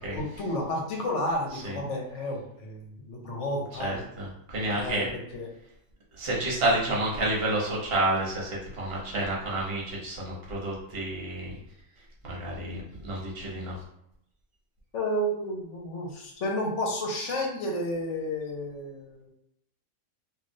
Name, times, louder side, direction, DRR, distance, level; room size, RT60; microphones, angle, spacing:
voice 1, 0.1-4.0 4.7-5.5 14.9-19.3, left 1 dB, 65° left, 0 dB, 1.0 m, -31 dB
voice 2, 3.8-5.1 6.1-11.5 12.2-13.8, right 1 dB, 50° right, -4 dB, 1.1 m, -30 dB
3.2 x 2.5 x 2.6 m, 0.77 s
omnidirectional pair, 1.4 m